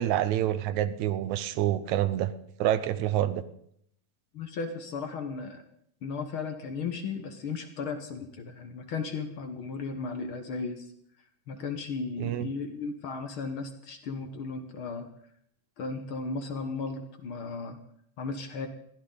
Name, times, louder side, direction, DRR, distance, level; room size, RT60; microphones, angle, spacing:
voice 1, 0.0-2.3 2.6-3.4 12.2-12.5, right 12 dB, 80° right, 14 dB, 2.1 m, -27 dB
voice 2, 4.3-5.6 6.0-10.9 11.5-15.1 15.8-17.8 18.2-18.7, left 4 dB, 55° left, 7 dB, 1.7 m, -35 dB
21.0 x 15.0 x 4.0 m, 0.69 s
omnidirectional pair, 3.3 m